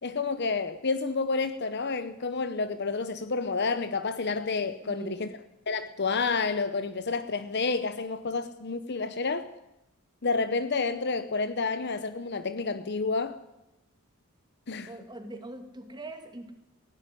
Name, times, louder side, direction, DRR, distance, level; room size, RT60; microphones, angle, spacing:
voice 1, 0.0-5.3 5.7-9.5 10.2-13.4 14.7-14.9, left 4 dB, 50° left, 11 dB, 0.8 m, -29 dB
voice 2, 4.8-5.3 14.9-16.5, right 1 dB, 20° right, 6 dB, 2.4 m, -42 dB
16.5 x 16.5 x 9.9 m, 0.91 s
head